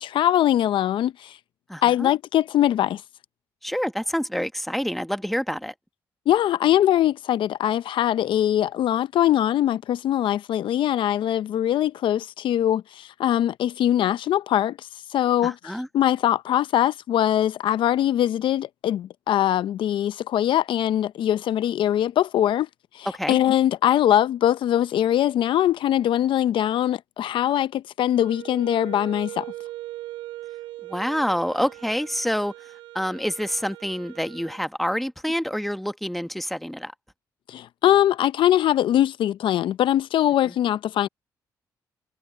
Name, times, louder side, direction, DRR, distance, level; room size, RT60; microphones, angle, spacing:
voice 1, 0.0-1.4 1.8-3.0 6.3-22.7 22.9-29.5 37.5-41.1, left 11 dB, 70° left, 0.6 m, -22 dB
voice 2, 1.7-2.1 3.6-5.7 15.4-15.9 23.1-23.4 30.8-32.7 32.9-36.9 40.4-40.5, equal, ahead, 1.5 m, -27 dB
Wind instrument woodwind instrument, 28.2-34.6, right 16 dB, 90° right, 2.4 m, -40 dB
supercardioid pair, 55°, 9 cm